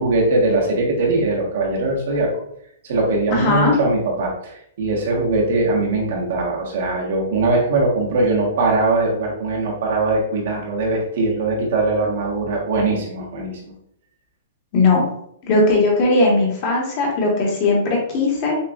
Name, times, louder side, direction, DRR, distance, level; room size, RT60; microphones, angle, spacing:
voice 1, 0.0-2.3 2.8-13.7, right 2 dB, 55° right, -1 dB, 1.1 m, -21 dB
voice 2, 3.3-3.7 14.7-15.0 15.4-18.6, left 2 dB, 30° left, -1 dB, 1.0 m, -18 dB
6.5 x 2.3 x 2.3 m, 0.72 s
hypercardioid pair, 175°, 0 cm